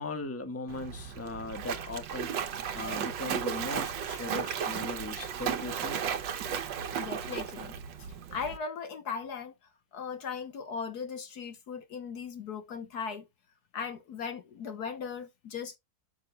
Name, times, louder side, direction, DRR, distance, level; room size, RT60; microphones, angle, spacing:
voice 1, 0.0-6.0, left 3 dB, 10° left, 1.2 m, -39 dB
Splash splatter, 0.7-8.6, right 8 dB, 80° right, 1.6 m, -35 dB
voice 2, 7.0-7.8 8.3-9.5 9.9-13.3 13.7-15.8, left 6 dB, 60° left, 1.6 m, -38 dB
12.5 x 6.2 x 2.3 m
omnidirectional pair, 1.9 m